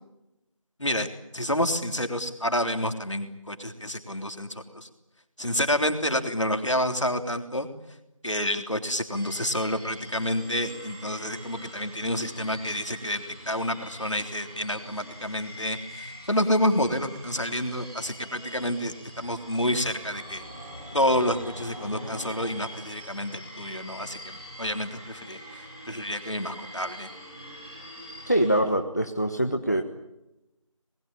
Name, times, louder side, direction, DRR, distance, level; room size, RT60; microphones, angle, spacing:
voice 1, 1.3-4.9 5.4-7.7 8.2-20.4 20.9-27.1, equal, 60° left, 7 dB, 3.4 m, -29 dB
sound 1, 9.1-28.6, equal, 10° left, 4.1 m, -44 dB
sound 2, 17.8-23.2, equal, 5° right, 4.9 m, -45 dB
voice 2, 28.3-29.8, right 1 dB, 30° left, 6 dB, 1.2 m, -24 dB
27.0 x 21.5 x 8.9 m, 0.93 s
figure-of-eight pair, 180°, 17 cm